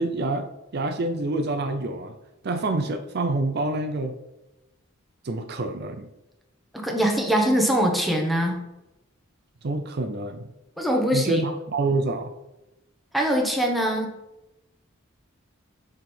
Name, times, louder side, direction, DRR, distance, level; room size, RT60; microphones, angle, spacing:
voice 1, 0.0-2.1 2.4-4.1 5.2-6.1 9.6-10.5 11.1-12.3, right 2 dB, 55° right, 7 dB, 0.6 m, -27 dB
voice 2, 6.7-8.6 10.8-11.4 13.1-14.1, equal, ahead, 0 dB, 1.1 m, -22 dB
6.1 x 5.2 x 4.4 m, 0.94 s
head